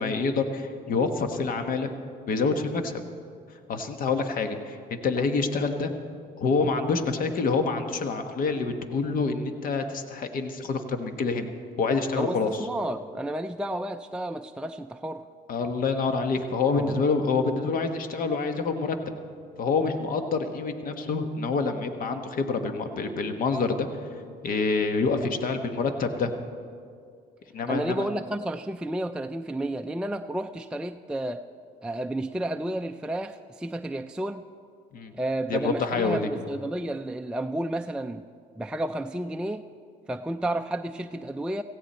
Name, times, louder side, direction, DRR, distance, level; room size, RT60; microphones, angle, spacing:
voice 1, 0.0-1.9 2.3-3.0 3.7-5.9 6.4-11.5 11.8-12.7 15.5-19.0 19.6-23.9 24.4-26.3 27.5-28.1 34.9-35.1 35.5-36.3, left 4 dB, 55° left, 7 dB, 1.3 m, -27 dB
voice 2, 12.2-15.2 16.8-17.0 27.7-31.4 31.8-34.4 35.2-38.3 38.6-39.7 40.1-41.6, right 1 dB, 5° right, 6 dB, 0.3 m, -31 dB
17.5 x 15.5 x 4.3 m, 2.3 s
cardioid pair, 110°, 17 cm